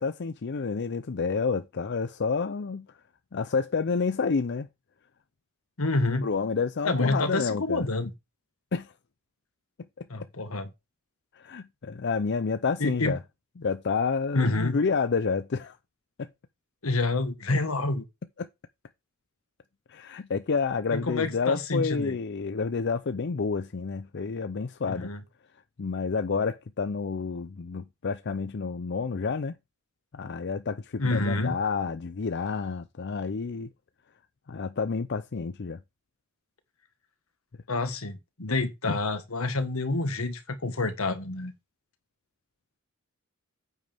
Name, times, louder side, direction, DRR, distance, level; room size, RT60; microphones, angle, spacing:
voice 1, 0.0-2.9 3.3-4.7 6.2-7.9 8.7-8.9 10.0-10.1 11.3-13.2 13.6-15.8 16.2-16.3 18.4-18.5 19.9-25.1 25.8-29.5 30.1-33.7 34.5-35.8 38.9-39.0, left 5 dB, 55° left, 0.5 m, -29 dB
voice 2, 5.8-6.3 6.8-8.1 10.1-10.7 12.8-13.1 14.3-14.8 16.8-18.0 20.9-22.2 24.8-25.2 31.0-31.5 37.7-41.5, left 2 dB, 80° left, 1.6 m, -28 dB
9.1 x 8.2 x 3.5 m
head